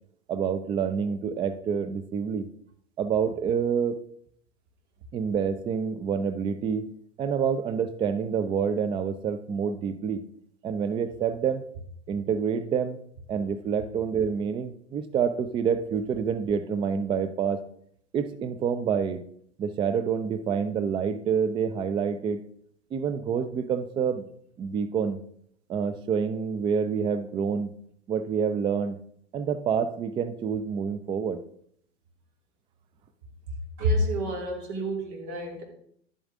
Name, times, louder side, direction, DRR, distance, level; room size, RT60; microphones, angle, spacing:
voice 1, 0.3-2.5 3.0-4.0 5.1-10.2 10.6-11.6 12.1-13.0 13.3-17.6 18.1-19.2 19.6-22.4 22.9-24.3 24.6-25.2 25.7-27.7 28.1-29.0 29.3-31.4, right 7 dB, 15° right, 12 dB, 0.4 m, -27 dB
voice 2, 33.8-35.6, equal, 45° right, 1 dB, 3.0 m, -28 dB
11.5 x 7.9 x 3.6 m, 0.65 s
figure-of-eight pair, 90°, 33 cm